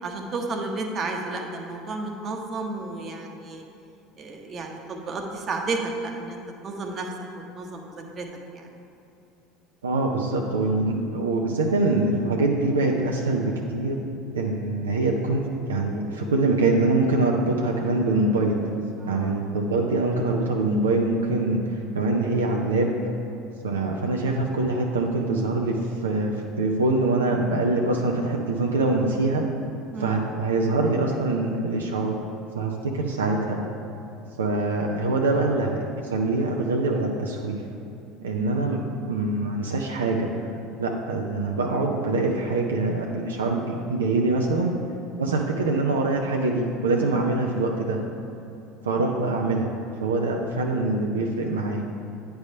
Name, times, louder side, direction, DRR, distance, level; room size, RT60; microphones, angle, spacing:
voice 1, 0.0-3.6 4.2-7.1 7.5-8.3 8.5-8.7 19.0-19.3 29.9-30.2 47.0-47.2, right 3 dB, 40° right, 2 dB, 0.9 m, -32 dB
voice 2, 9.8-14.0 14.3-15.4 15.7-18.6 19.1-22.9 23.6-29.4 30.0-32.2 32.5-33.6 34.4-35.8 36.1-37.6 38.2-38.8 39.1-40.3 40.8-44.7 45.2-48.0 48.8-49.7 50.0-51.9, right 2 dB, 85° right, 0 dB, 0.5 m, -24 dB
9.0 x 3.4 x 5.3 m, 2.7 s
hypercardioid pair, 70°, 0 cm